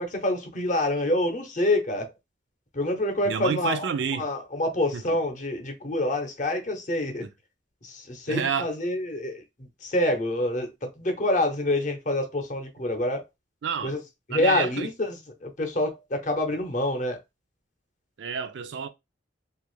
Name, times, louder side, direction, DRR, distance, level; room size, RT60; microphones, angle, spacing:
voice 1, 0.0-2.1 2.7-7.3 7.8-9.4 9.8-13.2 13.8-14.0 14.3-17.2, left 1 dB, 40° left, 0.7 m, -27 dB
voice 2, 3.2-4.3 4.9-5.2 8.3-8.7 13.6-14.0 14.3-14.9 18.2-18.9, right 6 dB, 65° right, 0.4 m, -29 dB
2.8 x 2.4 x 3.1 m
head